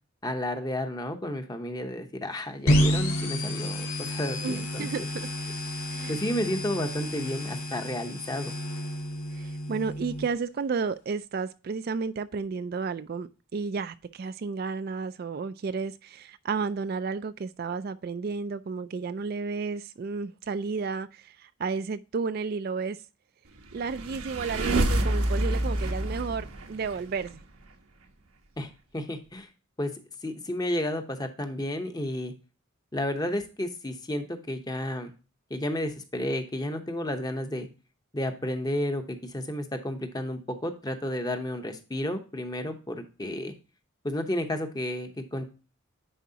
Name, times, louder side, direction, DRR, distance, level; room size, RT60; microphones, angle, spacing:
voice 1, 0.2-5.1 6.1-8.5 28.6-29.5 29.8-29.9 30.2-32.3 32.9-35.1 35.5-37.7 38.1-43.5 44.0-45.4, left 1 dB, 20° left, 0.8 m, -32 dB
sound 1, 2.7-10.3, equal, 90° left, 2.0 m, -30 dB
voice 2, 4.4-5.3 5.9-6.2 9.3-23.0 23.7-27.4, right 5 dB, 45° right, 0.3 m, -32 dB
sound 2, 23.7-27.3, right 1 dB, 90° right, 1.1 m, -27 dB
10.0 x 4.7 x 2.7 m
head